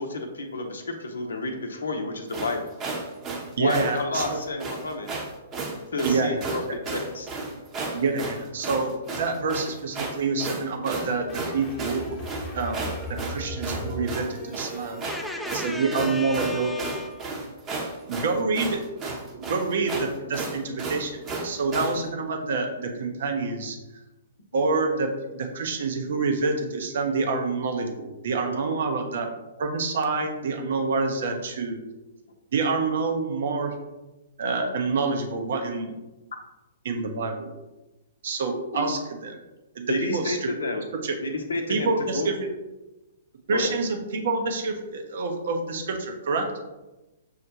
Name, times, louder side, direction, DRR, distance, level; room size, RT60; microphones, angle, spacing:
voice 1, 0.0-2.7 3.6-5.1 5.9-7.3 38.7-38.9 39.9-40.9 41.2-42.3 43.5-43.7, left 2 dB, 75° left, 4 dB, 0.6 m, -30 dB
sound 1, 2.3-22.0, right 3 dB, 25° right, 0.7 m, -33 dB
voice 2, 3.6-4.4 6.0-6.5 7.9-12.3 12.5-12.9 13.3-15.0 15.5-16.7 18.1-18.8 19.0-23.8 24.5-25.1 25.3-29.3 29.6-31.8 32.5-33.7 34.4-35.9 36.8-37.5 38.2-39.3 39.7-40.5 40.9-41.1 41.7-42.3 43.5-46.4, right 4 dB, 60° right, 4 dB, 0.6 m, -27 dB
sound 2, 10.8-15.4, left 1 dB, 20° left, 0.9 m, -38 dB
voice 3, 15.1-17.4, left 1 dB, 5° left, 3 dB, 0.5 m, -35 dB
6.4 x 2.1 x 2.8 m, 1.0 s
figure-of-eight pair, 120°, 0 cm